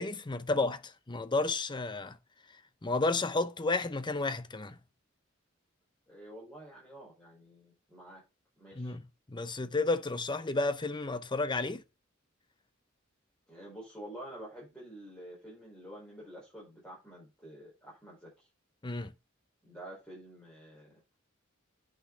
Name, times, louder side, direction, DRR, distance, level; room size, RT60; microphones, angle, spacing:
voice 1, 0.0-2.2 2.8-4.8 8.8-9.0 9.3-11.8 18.8-19.1, left 3 dB, 25° left, 0.7 m, -32 dB
voice 2, 6.1-8.2 8.6-9.0 13.5-18.5 19.6-20.9, right 1 dB, 5° left, 5.4 m, -49 dB
8.8 x 6.0 x 5.6 m
head